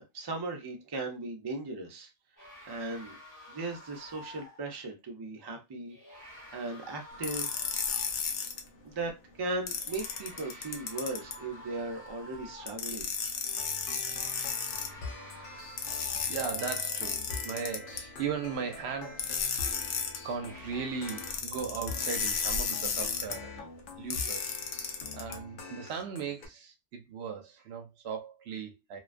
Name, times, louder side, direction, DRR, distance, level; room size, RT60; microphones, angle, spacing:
voice 1, 0.1-2.1 2.6-3.2 3.5-6.0 6.5-7.5 8.8-9.1 9.4-13.1, right 2 dB, 40° right, 0.3 m, -37 dB
sound 1, 2.4-4.7 5.9-8.3 9.6-13.0 13.9-16.6 20.1-21.4, left 1 dB, 20° left, 0.9 m, -50 dB
sound 2, 7.2-8.6 9.7-11.4 12.7-14.9 15.8-18.0 19.2-20.2 21.1-23.3 24.1-25.3, left 6 dB, 80° left, 0.9 m, -33 dB
sound 3, 13.4-26.5, left 4 dB, 60° left, 0.6 m, -45 dB
voice 2, 16.3-19.9 20.2-23.7 24.0-29.0, right 6 dB, 70° right, 0.8 m, -38 dB
2.3 x 2.2 x 2.4 m
omnidirectional pair, 1.2 m